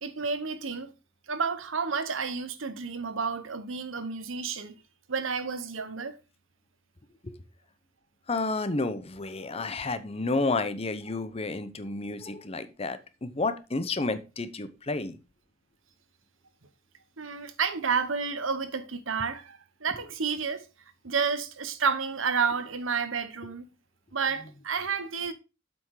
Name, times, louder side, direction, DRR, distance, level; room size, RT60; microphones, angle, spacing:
voice 1, 0.0-0.9 1.3-4.8 5.1-6.2 17.2-20.6 21.0-23.7 24.1-25.3, right 5 dB, 80° right, 1.1 m, -30 dB
voice 2, 8.3-15.2, left 3 dB, 30° left, 0.8 m, -31 dB
7.8 x 5.9 x 4.7 m
head